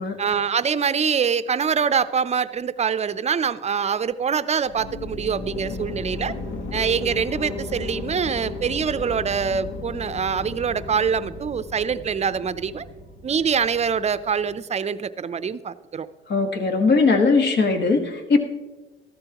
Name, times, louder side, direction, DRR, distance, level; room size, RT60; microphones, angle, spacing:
voice 1, 0.2-6.3 6.7-12.8 13.2-16.1, right 6 dB, 35° right, 14 dB, 0.5 m, -24 dB
sound 1, 4.6-14.5, left 2 dB, 80° left, 1.4 m, -35 dB
voice 2, 16.3-18.4, left 4 dB, 60° left, 4 dB, 1.5 m, -19 dB
13.5 x 13.0 x 2.9 m, 1.2 s
cardioid pair, 90°, 20 cm